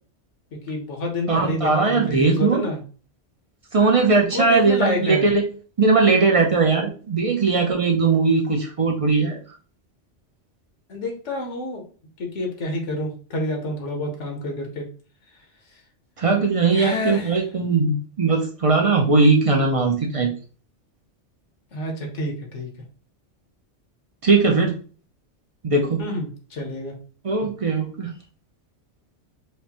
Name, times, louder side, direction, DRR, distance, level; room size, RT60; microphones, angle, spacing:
voice 1, 0.5-2.8 4.3-5.3 10.9-11.8 12.2-14.8 16.7-17.4 21.7-22.7 26.0-26.9 27.4-27.5, left 1 dB, 75° left, 2 dB, 1.3 m, -28 dB
voice 2, 1.3-2.7 3.7-5.4 5.8-9.4 16.2-20.3 24.2-24.8 25.6-26.0 27.2-28.1, right 4 dB, 50° right, 1 dB, 0.4 m, -19 dB
4.8 x 2.1 x 2.8 m, 0.39 s
omnidirectional pair, 1.2 m